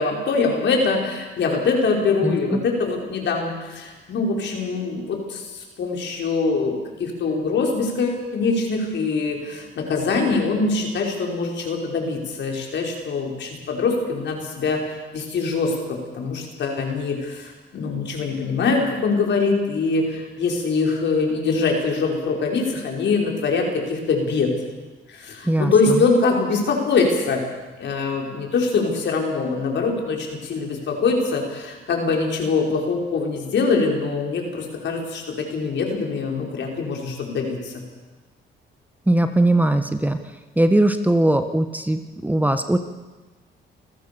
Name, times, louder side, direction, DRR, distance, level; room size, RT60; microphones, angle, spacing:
voice 1, 0.0-24.5 25.1-27.4 27.8-37.8, left 4 dB, 65° left, 0 dB, 5.5 m, -23 dB
voice 2, 2.2-2.6 25.4-26.0 39.1-40.2 40.6-42.8, right 1 dB, 10° right, 8 dB, 1.2 m, -20 dB
28.0 x 14.5 x 7.1 m, 1.2 s
cardioid pair, 90°, 20 cm